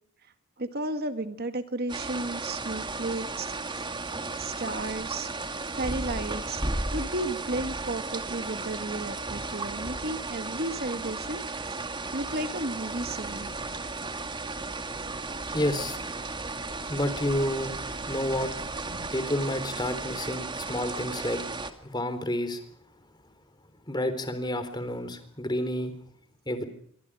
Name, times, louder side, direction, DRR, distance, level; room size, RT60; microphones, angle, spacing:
voice 1, 0.2-3.5 4.4-5.3 5.7-6.6 6.9-11.8 12.1-13.5, right 2 dB, 45° right, 9 dB, 1.9 m, -33 dB
sound 1, 1.9-21.7, right 3 dB, 20° right, 2.2 m, -35 dB
sound 2, 12.8-19.1, right 1 dB, 70° right, 4.6 m, -48 dB
voice 2, 15.5-16.0 16.9-17.7 18.1-18.5 19.1-21.4 21.8-22.6 23.9-25.9 26.5-26.6, left 1 dB, 20° left, 11 dB, 3.8 m, -29 dB
27.5 x 24.0 x 5.0 m, 0.64 s
head